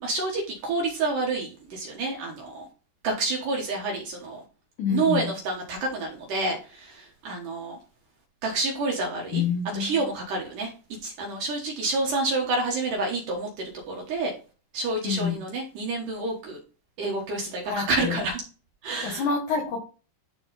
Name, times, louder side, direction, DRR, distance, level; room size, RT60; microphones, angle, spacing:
voice 1, 0.0-2.7 3.0-4.4 4.9-7.8 8.4-9.4 9.7-10.7 11.0-14.3 14.7-16.6 17.0-18.4 18.8-19.2, right 3 dB, 65° right, 0 dB, 2.2 m, -28 dB
voice 2, 4.8-5.4 9.3-9.9 15.0-15.4 17.7-18.2 19.0-19.8, left 6 dB, 75° left, 2 dB, 1.8 m, -27 dB
11.0 x 3.8 x 4.0 m, 0.36 s
omnidirectional pair, 5.2 m